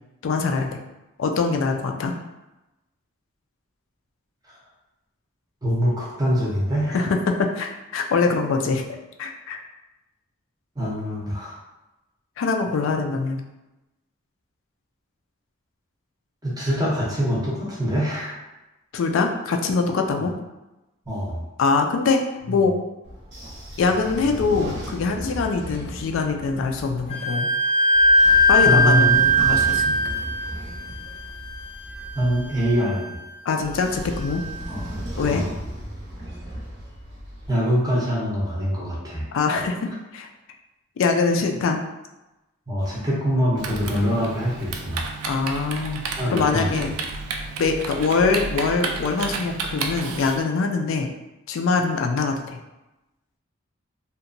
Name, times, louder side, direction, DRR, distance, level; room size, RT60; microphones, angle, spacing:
voice 1, 0.2-0.8 1.2-2.1 6.9-8.8 9.2-9.6 12.4-13.4 18.9-20.3 21.6-22.2 22.5-22.7 23.8-27.5 28.5-30.0 33.5-34.4 35.1-35.5 39.3-40.3 41.0-41.8 45.2-46.9 47.6-51.1 51.5-52.6, left 4 dB, 65° left, 4 dB, 0.3 m, -23 dB
voice 2, 5.6-7.0 10.8-11.6 16.4-18.4 21.1-21.4 28.6-29.3 32.1-33.2 34.7-34.8 35.3-35.4 37.5-39.3 42.7-45.0 46.2-46.9, equal, 15° right, -5 dB, 0.6 m, -24 dB
Train / Sliding door, 23.0-27.1 27.9-32.8 33.6-37.5, equal, 55° right, 0.7 m, -36 dB
Wind instrument woodwind instrument, 27.1-34.5, equal, 30° left, 0.6 m, -21 dB
Typing, 43.6-50.4, right 4 dB, 85° right, 0.3 m, -32 dB
2.8 x 2.1 x 2.5 m, 1.0 s
head